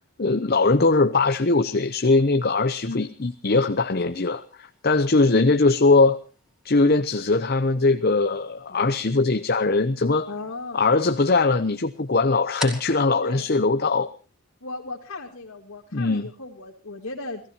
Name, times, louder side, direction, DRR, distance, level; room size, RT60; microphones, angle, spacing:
voice 1, 0.2-6.2 6.6-10.3 10.7-14.1 15.9-16.3, left 3 dB, 45° left, 9 dB, 0.7 m, -21 dB
sound 1, 0.9-14.5, left 1 dB, 5° right, 3.4 m, -46 dB
voice 2, 10.3-10.8 13.2-13.5 14.6-17.4, left 2 dB, 80° left, -3 dB, 2.3 m, -36 dB
30.0 x 15.5 x 2.9 m, 0.36 s
head